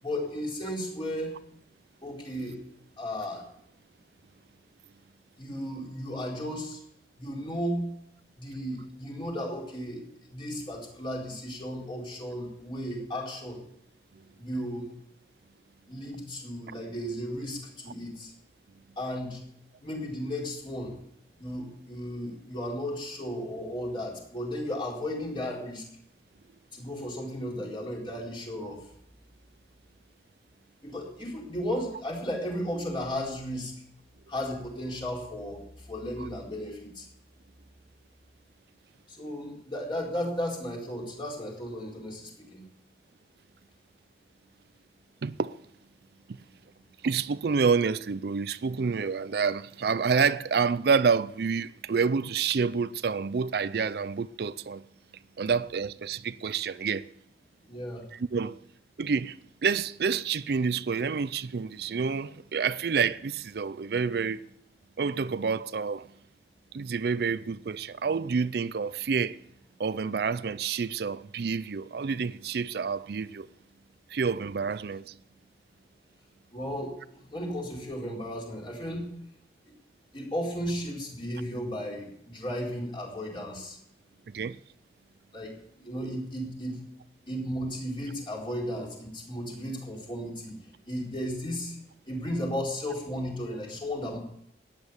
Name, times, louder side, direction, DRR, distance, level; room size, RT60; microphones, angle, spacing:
voice 1, 0.0-1.3 2.0-2.6 3.0-3.5 5.4-6.8 7.2-7.9 8.4-13.6 14.3-14.9 15.9-18.3 19.0-19.4 19.8-20.9 21.4-25.8 26.7-28.8 30.8-33.7 34.3-37.1 39.1-42.6 57.7-58.0 76.5-79.1 79.7-79.8 80.1-83.8 85.3-86.8 87.3-90.6 90.9-91.8 92.1-94.2, equal, 30° left, 4.3 m, -34 dB
voice 2, 45.2-45.5 46.3-46.4 47.0-54.8 55.4-57.1 58.1-58.6 59.0-64.4 65.0-66.1 66.7-69.4 69.8-73.5 74.1-75.2 84.3-84.6, right 5 dB, 60° right, 0.4 m, -28 dB
14.5 x 10.0 x 7.0 m
head